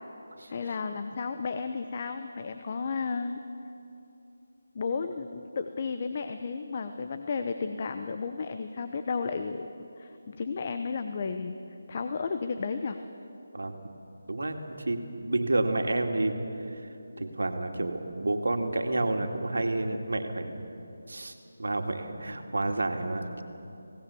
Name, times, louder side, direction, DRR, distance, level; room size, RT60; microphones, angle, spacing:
voice 1, 0.5-3.4 4.7-9.7 10.0-11.5 11.9-13.0, left 5 dB, 40° left, 8 dB, 0.9 m, -33 dB
voice 2, 14.3-20.7 21.1-23.4, right 2 dB, 75° right, 4 dB, 2.3 m, -30 dB
26.5 x 18.0 x 7.1 m, 2.8 s
figure-of-eight pair, 165°, 0 cm